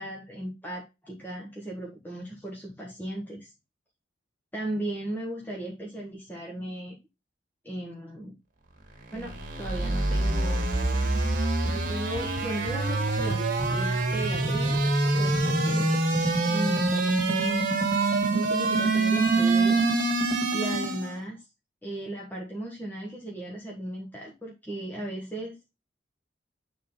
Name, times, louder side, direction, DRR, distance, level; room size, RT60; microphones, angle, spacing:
voice 1, 0.0-3.5 4.5-7.0 7.6-8.3 9.1-10.6 11.6-14.8 15.2-16.0 16.5-17.7 18.3-21.4 21.8-25.6, right 1 dB, 10° left, -3 dB, 1.4 m, -36 dB
sound 1, 9.0-21.2, right 2 dB, 50° right, 2.1 m, -25 dB
9.3 x 3.8 x 3.8 m, 0.25 s
head